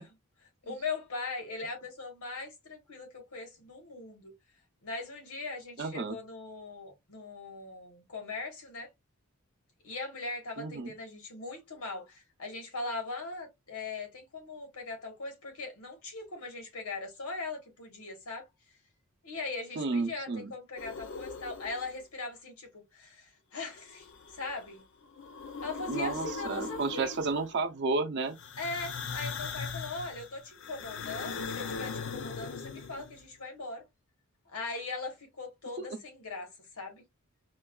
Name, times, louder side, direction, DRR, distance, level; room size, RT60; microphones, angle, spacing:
voice 1, 0.6-4.3 4.8-8.9 9.8-18.5 19.2-24.8 25.6-27.1 28.6-33.8 34.5-37.0, left 3 dB, 90° left, 1.3 m, -40 dB
voice 2, 5.8-6.2 10.6-10.9 19.8-20.5 25.9-28.4 35.8-35.9, right 3 dB, 55° right, 0.5 m, -32 dB
sound 1, 20.8-22.0 23.8-24.7 25.0-27.6 28.4-33.2, left 5 dB, 55° left, 0.5 m, -40 dB
4.4 x 2.2 x 2.3 m
head